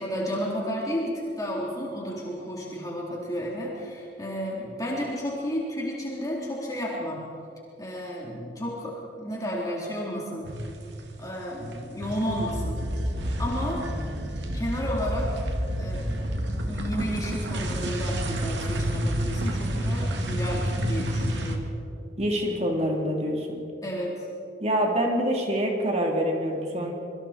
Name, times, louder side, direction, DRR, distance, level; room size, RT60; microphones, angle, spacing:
voice 1, 0.0-7.2 7.8-10.5 11.2-12.8 13.4-13.9 14.5-15.3 15.8-16.2 16.6-21.7 23.8-24.3, equal, 20° left, -4 dB, 3.8 m, -32 dB
sound 1, 10.4-11.2 11.5-21.6, equal, 85° right, 2.5 m, -29 dB
voice 2, 22.2-23.6 24.6-26.9, equal, 40° right, 0 dB, 3.6 m, -26 dB
27.0 x 23.5 x 4.5 m, 2.6 s
head